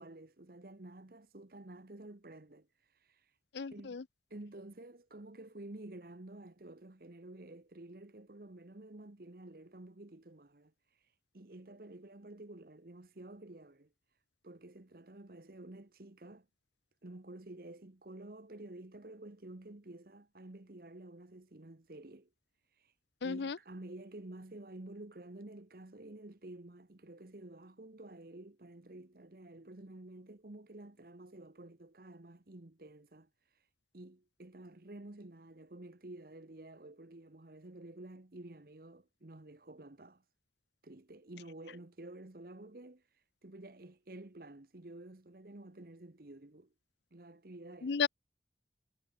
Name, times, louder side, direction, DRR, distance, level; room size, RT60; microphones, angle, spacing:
voice 1, 0.0-3.4 3.7-4.0 4.3-13.9 14.4-16.5 17.0-22.3 22.7-22.9 23.2-33.7 33.9-40.2 40.8-46.7 47.1-48.0, right 2 dB, 55° right, 1.2 m, -51 dB
voice 2, 3.5-4.0 23.2-23.6 47.8-48.1, left 5 dB, 75° left, 0.5 m, -33 dB
head